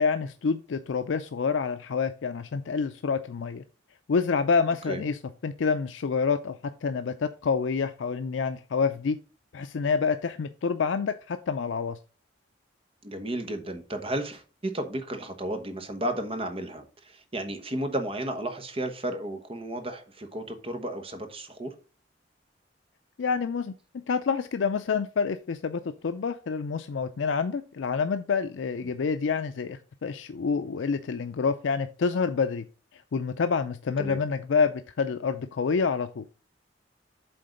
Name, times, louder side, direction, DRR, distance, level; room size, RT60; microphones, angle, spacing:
voice 1, 0.0-3.6 4.1-9.2 9.5-12.0 23.2-23.8 24.1-32.6 33.1-36.2, left 5 dB, 85° left, 0.4 m, -27 dB
voice 2, 13.0-21.7 28.8-28.9 34.0-34.2, right 1 dB, 30° right, 1.1 m, -33 dB
7.8 x 3.8 x 5.0 m
head